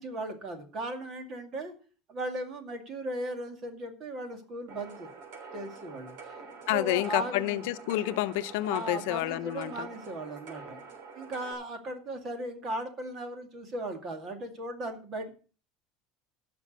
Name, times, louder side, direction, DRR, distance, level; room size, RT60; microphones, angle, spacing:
voice 1, 0.0-1.7 2.1-5.1 5.5-6.2 6.7-7.6 8.7-10.8 11.2-15.3, right 1 dB, 30° right, 2.2 m, -37 dB
sound 1, 4.7-11.5, right 4 dB, 80° right, 3.7 m, -46 dB
voice 2, 6.7-9.9, left 16 dB, 90° left, 0.7 m, -29 dB
15.5 x 6.1 x 6.4 m
cardioid pair, 175°, 0 cm